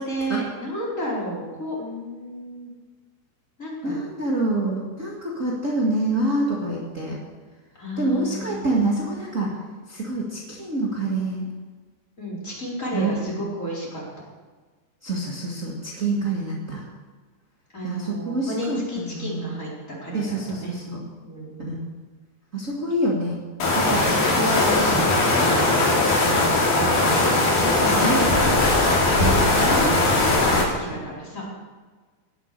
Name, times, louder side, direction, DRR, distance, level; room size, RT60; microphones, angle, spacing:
voice 1, 0.0-2.7 3.6-4.0 7.8-8.6 12.2-14.0 16.1-16.4 17.7-20.7 21.2-21.8 23.9-25.6 26.7-27.2 27.8-28.6 29.6-31.4, equal, 20° left, -5 dB, 4.1 m, -32 dB
voice 2, 3.8-7.2 8.0-9.6 9.9-11.5 12.9-13.3 15.0-16.8 17.8-18.8 19.1-19.5 20.1-21.0 21.7-21.8 22.5-23.4 23.7-24.3 26.2-26.5 27.5-28.2 29.2-29.7, right 2 dB, 50° right, -4 dB, 0.9 m, -26 dB
sound 1, 23.6-30.6, left 2 dB, 55° left, 4.4 m, -19 dB
18.5 x 8.4 x 6.8 m, 1.4 s
omnidirectional pair, 5.1 m